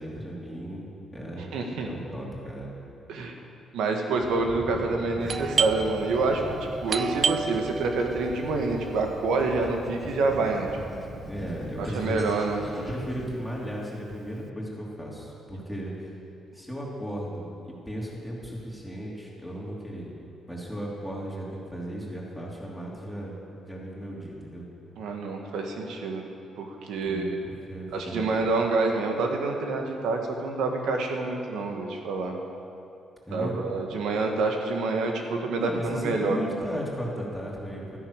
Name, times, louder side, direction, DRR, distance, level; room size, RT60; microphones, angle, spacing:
voice 1, 0.0-1.5 1.8-2.8 11.3-12.2 12.7-16.2 16.5-20.1 20.5-24.6 27.0-28.5 33.3-33.7 35.6-38.0, equal, ahead, -4 dB, 3.2 m, -36 dB
voice 2, 1.5-1.9 3.1-3.4 3.7-11.0 11.8-12.6 25.0-26.3 26.6-27.4 27.9-32.3 33.3-36.4, right 3 dB, 85° right, 3 dB, 1.7 m, -27 dB
sound 1, 4.1-13.3, equal, 15° right, 4.1 m, -41 dB
Doorbell, 5.3-10.7, right 6 dB, 50° right, 0.5 m, -32 dB
13.5 x 9.9 x 6.7 m, 2.6 s
cardioid pair, 90°, 0 cm